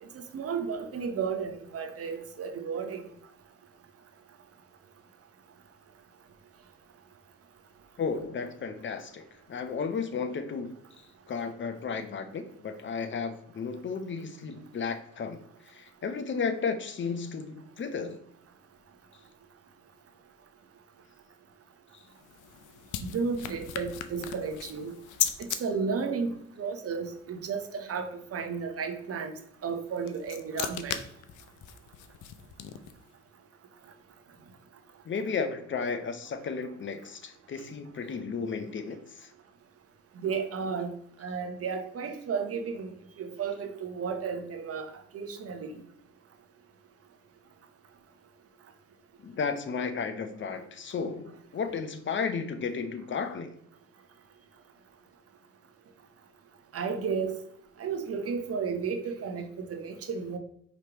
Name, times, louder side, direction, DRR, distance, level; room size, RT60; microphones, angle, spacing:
voice 1, 0.0-3.0 23.0-24.9 25.4-29.3 29.6-31.0 40.2-40.9 41.2-45.8 56.7-57.4 57.8-60.4, right 5 dB, 50° right, 0.9 m, -33 dB
voice 2, 8.0-10.7 11.3-18.2 35.1-39.3 49.2-53.5, left 5 dB, 40° left, 0.6 m, -33 dB
sound 1, 22.0-25.6 29.7-33.1, left 10 dB, 80° left, 0.5 m, -37 dB
5.0 x 3.2 x 2.9 m
cardioid pair, 90°, 30 cm